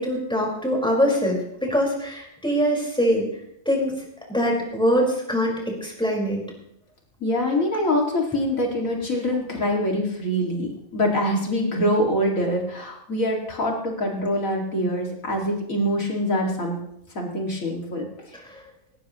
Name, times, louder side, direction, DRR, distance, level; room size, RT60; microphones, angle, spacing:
voice 1, 0.0-3.3 3.6-3.9 4.3-6.4 18.4-18.6, equal, 5° left, -2 dB, 4.8 m, -23 dB
voice 2, 7.2-16.8 17.1-18.1, equal, 75° left, 0 dB, 2.8 m, -24 dB
19.0 x 18.0 x 3.1 m, 0.77 s
omnidirectional pair, 1.4 m